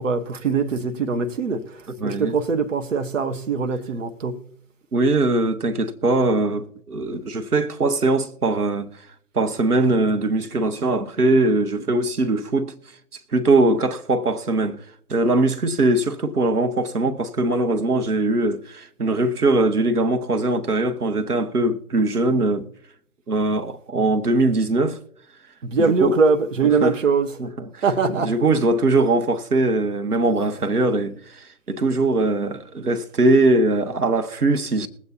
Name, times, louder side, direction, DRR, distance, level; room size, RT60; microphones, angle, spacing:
voice 1, 0.0-4.4 25.6-27.3 27.8-28.3, right 4 dB, 55° right, 1.2 m, -22 dB
voice 2, 2.0-2.3 4.9-8.9 9.3-12.7 13.1-14.8 15.1-22.7 23.3-25.0 25.8-26.1 26.8-27.0 27.4-27.8 28.2-34.9, right 2 dB, 85° right, 1.2 m, -21 dB
21.5 x 8.4 x 2.8 m
figure-of-eight pair, 145°, 45 cm